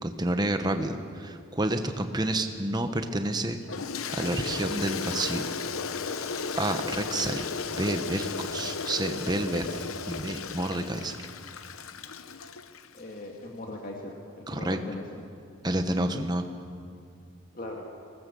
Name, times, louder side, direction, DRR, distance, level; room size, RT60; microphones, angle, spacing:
voice 1, 0.0-3.6 4.1-5.4 6.5-7.5 7.7-9.8 10.1-11.1 14.5-14.8 15.6-16.4, right 1 dB, 20° right, 7 dB, 1.2 m, -29 dB
Toilet flush, 3.7-13.0, left 5 dB, 85° left, 0.9 m, -35 dB
voice 2, 12.9-15.0 17.5-17.8, left 1 dB, 40° left, 0 dB, 2.1 m, -39 dB
23.5 x 19.5 x 7.0 m, 2.3 s
head